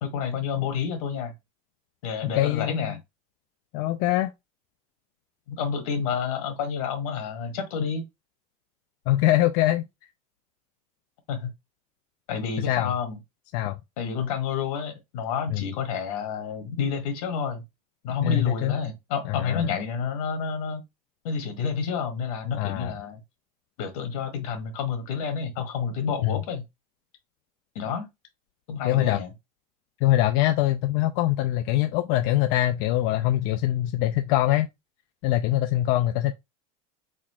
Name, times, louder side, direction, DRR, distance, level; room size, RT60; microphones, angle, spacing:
voice 1, 0.0-1.3 2.0-3.0 5.5-8.0 11.3-11.5 12.3-13.2 14.0-17.6 18.0-20.8 21.2-23.2 23.8-26.6 27.7-28.1 28.7-29.3, left 6 dB, 80° left, 1.5 m, -29 dB
voice 2, 2.2-2.9 3.7-4.3 9.1-9.8 12.7-12.9 13.5-13.8 15.5-15.7 18.2-18.7 19.2-19.7 22.5-22.9 26.2-26.4 28.8-29.2 30.0-34.7 35.2-36.3, left 14 dB, 55° left, 0.4 m, -23 dB
4.3 x 2.4 x 4.2 m
supercardioid pair, 150°, 18 cm